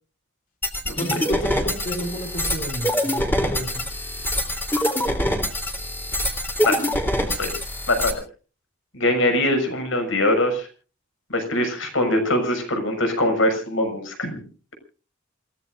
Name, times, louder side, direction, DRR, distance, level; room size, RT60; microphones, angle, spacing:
sound 1, 0.6-8.1, equal, 10° left, 3.3 m, -25 dB
voice 1, 1.0-3.9, equal, 45° left, 2 dB, 5.1 m, -31 dB
voice 2, 7.2-7.5 7.9-8.2 8.9-10.7 11.3-14.4, left 1 dB, 80° left, 6 dB, 6.6 m, -22 dB
28.0 x 17.5 x 2.5 m, 0.38 s
head